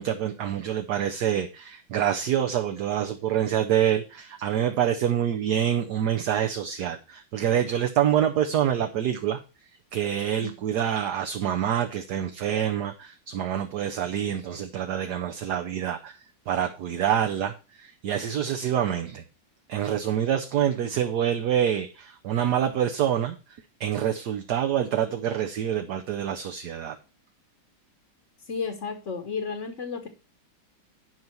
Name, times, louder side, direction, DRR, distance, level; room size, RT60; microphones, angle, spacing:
voice 1, 0.0-9.4 9.9-16.2 16.5-19.2 19.7-23.4 23.8-27.0, right 10 dB, 65° right, 6 dB, 1.3 m, -26 dB
voice 2, 28.5-30.1, left 5 dB, 45° left, 6 dB, 1.3 m, -32 dB
11.0 x 5.5 x 4.5 m, 0.32 s
omnidirectional pair, 2.1 m